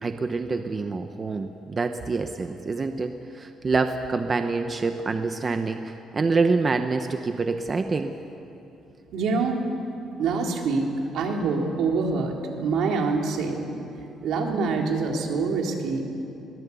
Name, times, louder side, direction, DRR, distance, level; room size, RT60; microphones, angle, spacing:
voice 1, 0.0-8.1, right 4 dB, 25° right, 7 dB, 0.8 m, -26 dB
voice 2, 9.1-9.6 10.2-10.9 11.1-13.7 14.2-16.0, right 4 dB, 70° right, 1 dB, 3.1 m, -25 dB
22.0 x 18.5 x 8.3 m, 2.8 s
cardioid pair, 150°, 0 cm